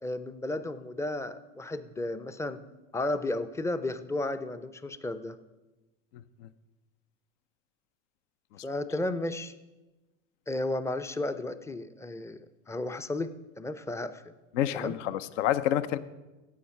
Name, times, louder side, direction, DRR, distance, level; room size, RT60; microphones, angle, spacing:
voice 1, 0.0-2.6 2.9-5.4 8.6-9.5 10.5-14.3 14.7-14.9, left 2 dB, 5° left, 12 dB, 0.5 m, -33 dB
voice 2, 6.1-6.5 8.5-8.7 14.5-16.0, left 12 dB, 65° left, 15 dB, 0.7 m, -29 dB
16.0 x 5.6 x 5.8 m, 1.1 s
hypercardioid pair, 85°, 39 cm